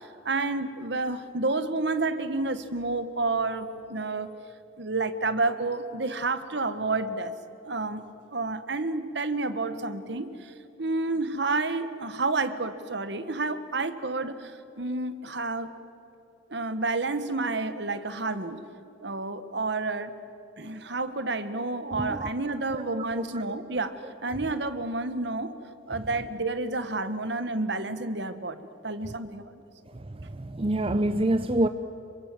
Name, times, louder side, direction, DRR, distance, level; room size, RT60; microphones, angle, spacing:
voice 1, 0.0-4.3 4.8-7.3 7.6-8.0 8.3-15.7 16.5-18.6 19.0-20.1 20.6-25.6 25.9-29.5, right 3 dB, 60° right, 11 dB, 1.5 m, -30 dB
voice 2, 21.9-22.3 22.7-23.4 29.9-31.7, right 1 dB, 30° right, 10 dB, 0.6 m, -27 dB
27.5 x 24.5 x 7.8 m, 3.0 s
head